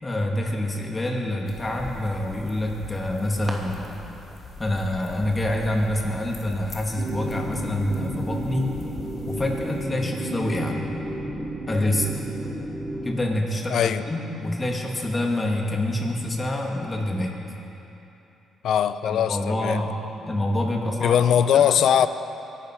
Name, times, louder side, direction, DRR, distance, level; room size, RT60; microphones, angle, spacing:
voice 1, 0.0-3.8 4.6-8.7 9.3-10.8 11.7-12.1 13.0-17.4 19.0-19.9 20.3-21.2 21.5-21.7, left 1 dB, 25° left, 0 dB, 2.6 m, -26 dB
sound 1, 1.5-9.8, left 2 dB, 45° left, 2.3 m, -42 dB
sound 2, 2.5-7.7, right 1 dB, 20° right, 2.4 m, -45 dB
sound 3, 7.0-13.1, right 1 dB, 45° right, 2.9 m, -32 dB
voice 2, 13.7-14.1 18.6-19.8 21.0-22.1, left 9 dB, 70° left, 12 dB, 0.6 m, -20 dB
23.0 x 12.0 x 4.9 m, 3.0 s
cardioid pair, 90°, 0 cm